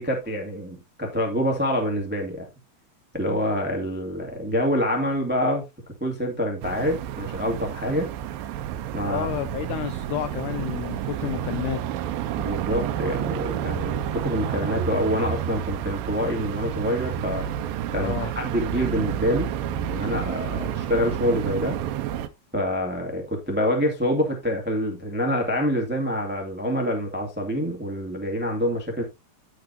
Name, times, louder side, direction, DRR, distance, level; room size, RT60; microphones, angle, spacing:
voice 1, 0.0-2.4 3.1-5.6 6.0-8.1 8.9-9.3 12.4-17.5 17.9-19.5 19.9-21.8 22.5-29.0, equal, 10° right, 0.4 m, -26 dB
sound 1, 6.6-22.3, right 10 dB, 80° right, 2.4 m, -30 dB
voice 2, 9.1-11.8 18.0-18.3, left 13 dB, 85° left, 1.8 m, -30 dB
14.5 x 4.9 x 2.8 m
omnidirectional pair, 4.4 m